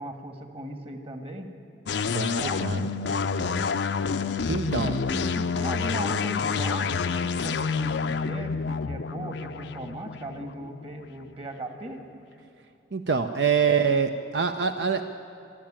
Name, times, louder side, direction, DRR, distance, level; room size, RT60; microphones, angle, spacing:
voice 1, 0.0-1.5 2.4-2.6 4.6-12.0, right 1 dB, 35° right, 5 dB, 1.9 m, -37 dB
sound 1, 1.9-11.3, left 5 dB, 80° left, 0.5 m, -28 dB
voice 2, 2.1-2.9 4.5-4.9 12.9-15.0, right 6 dB, 70° right, 7 dB, 0.7 m, -25 dB
26.5 x 11.5 x 8.9 m, 3.0 s
head